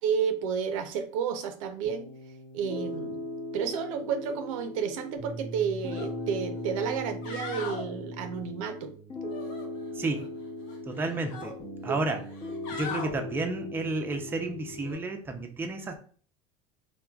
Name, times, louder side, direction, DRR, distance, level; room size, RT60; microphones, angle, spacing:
voice 1, 0.0-2.1 2.5-3.2 3.5-8.9 11.9-12.0, right 7 dB, 80° right, 7 dB, 0.5 m, -31 dB
Piano, 1.8-14.9, left 2 dB, 40° left, 0.9 m, -39 dB
sound 1, 5.9-6.1 6.5-6.6 7.1-7.9 9.3-10.3 10.6-11.5 12.3-13.1 14.8-15.0, left 5 dB, 80° left, 0.9 m, -40 dB
voice 2, 10.0-10.3 10.9-11.5 11.8-12.2 12.7-16.0, right 2 dB, 15° right, 4 dB, 0.4 m, -31 dB
3.1 x 2.2 x 2.2 m, 0.43 s
supercardioid pair, 105°, 17 cm